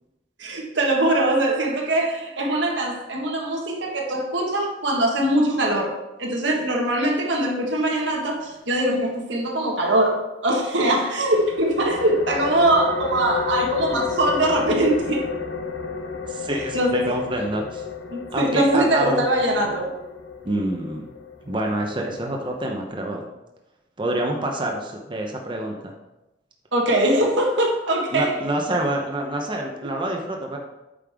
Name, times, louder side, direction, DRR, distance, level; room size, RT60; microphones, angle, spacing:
voice 1, 0.4-15.3 16.7-17.2 18.1-19.9 26.7-28.4, right 1 dB, 85° right, 0 dB, 1.6 m, -22 dB
sound 1, 11.2-22.6, left 6 dB, 85° left, 0.8 m, -32 dB
voice 2, 16.3-17.8 18.3-19.2 20.4-21.1 21.4-23.3 24.0-25.9 28.1-30.6, right 1 dB, 25° right, 1 dB, 0.8 m, -27 dB
8.5 x 5.4 x 3.6 m, 0.98 s
head